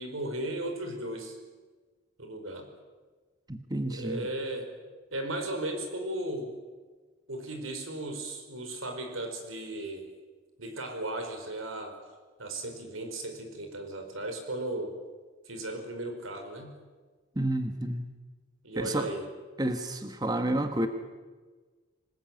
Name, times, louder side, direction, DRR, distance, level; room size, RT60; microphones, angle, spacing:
voice 1, 0.0-1.4 2.2-2.7 3.9-4.7 5.1-6.5 7.3-10.0 10.6-12.0 12.4-15.0 15.4-16.7 18.6-19.3, right 1 dB, 90° right, 5 dB, 5.1 m, -36 dB
voice 2, 3.5-4.3 17.3-18.1 18.8-19.1 19.6-20.9, right 1 dB, 20° right, 7 dB, 1.3 m, -30 dB
25.5 x 20.0 x 9.2 m, 1.4 s
head